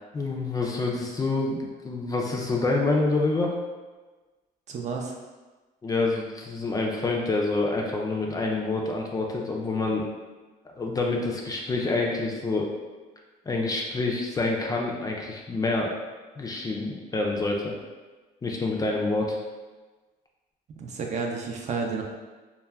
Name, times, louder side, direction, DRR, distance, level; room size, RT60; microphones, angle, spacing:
voice 1, 0.1-3.5 5.8-10.1 10.8-12.7 13.5-15.9 16.4-17.7 18.4-19.4, left 3 dB, 20° left, -1 dB, 0.3 m, -27 dB
voice 2, 4.7-5.1 20.8-22.0, right 4 dB, 45° right, 1 dB, 0.4 m, -31 dB
2.3 x 2.1 x 3.2 m, 1.3 s
cardioid pair, 110°, 17 cm